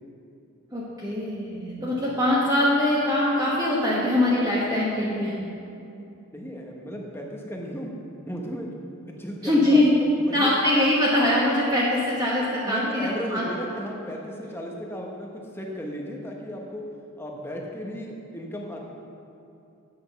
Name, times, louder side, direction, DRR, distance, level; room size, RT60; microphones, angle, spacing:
voice 1, 0.7-5.3 9.4-9.9 10.3-13.4, left 1 dB, 15° right, -7 dB, 1.2 m, -22 dB
voice 2, 6.3-7.9 8.2-8.7 9.1-9.8 10.2-10.5 12.6-16.8 17.2-18.8, equal, 10° left, 0 dB, 0.9 m, -35 dB
8.5 x 6.0 x 6.8 m, 2.8 s
head